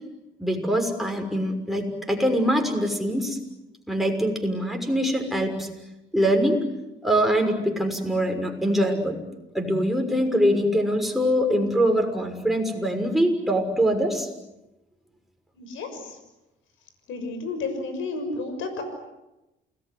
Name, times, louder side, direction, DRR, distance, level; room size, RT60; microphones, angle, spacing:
voice 1, 0.4-3.4 3.9-5.7 6.1-6.6 7.0-9.2 9.5-14.3, equal, ahead, 3 dB, 6.4 m, -23 dB
voice 2, 15.5-16.2 17.1-18.8, left 3 dB, 85° left, 8 dB, 6.4 m, -31 dB
29.0 x 20.0 x 9.8 m, 0.97 s
cardioid pair, 90°, 20 cm